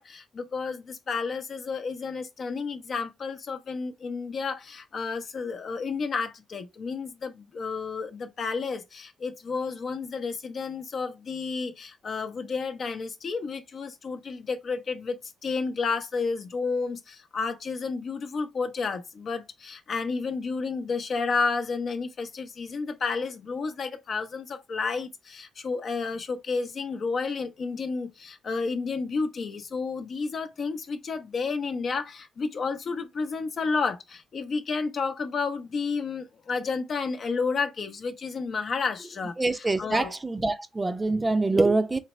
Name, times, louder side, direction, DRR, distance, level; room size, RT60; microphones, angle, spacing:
voice 1, 0.0-40.1 41.5-41.6, left 4 dB, 50° left, 0.8 m, -31 dB
voice 2, 39.4-42.0, right 2 dB, 20° right, 0.6 m, -25 dB
4.0 x 3.1 x 3.1 m
cardioid pair, 90°, 0 cm